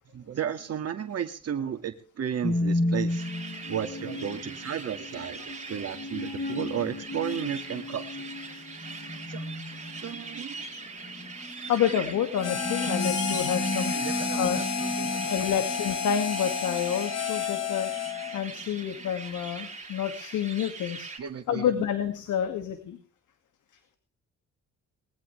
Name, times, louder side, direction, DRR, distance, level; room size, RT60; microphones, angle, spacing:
voice 1, 0.1-3.3 3.7-8.1 9.3-9.5 10.0-10.7 13.9-14.6 15.0-15.3 21.2-21.8, right 8 dB, 55° right, 6 dB, 2.0 m, -34 dB
sound 1, 2.4-19.1, left 1 dB, 30° left, 6.0 m, -34 dB
sound 2, 3.1-21.2, right 4 dB, 25° right, 4.8 m, -41 dB
voice 2, 11.7-13.9 14.4-14.6 15.3-17.9 18.3-21.1 21.5-23.0, left 9 dB, 75° left, 8 dB, 2.2 m, -28 dB
Harmonica, 12.4-18.4, left 7 dB, 60° left, 2.6 m, -31 dB
21.0 x 15.0 x 3.4 m, 0.42 s
cardioid pair, 90°, 30 cm